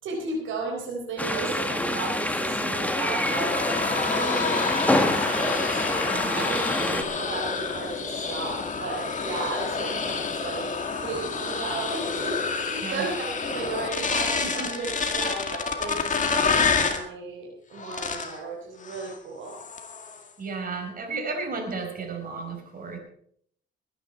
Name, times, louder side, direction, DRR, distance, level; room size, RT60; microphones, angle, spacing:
voice 1, 0.0-3.8 4.1-5.8 6.3-19.6, right 3 dB, 80° right, 1 dB, 3.9 m, -34 dB
sound 1, 1.2-7.0, left 1 dB, 5° left, 1.8 m, -26 dB
sound 2, 3.2-17.1 17.8-18.4 18.8-19.2 19.5-20.2, left 5 dB, 40° left, 2.2 m, -28 dB
voice 2, 6.1-6.5 12.8-13.1 14.4-14.7 20.4-23.0, right 4 dB, 45° right, 3 dB, 4.8 m, -33 dB
20.5 x 10.0 x 4.5 m, 0.64 s
cardioid pair, 90°, 20 cm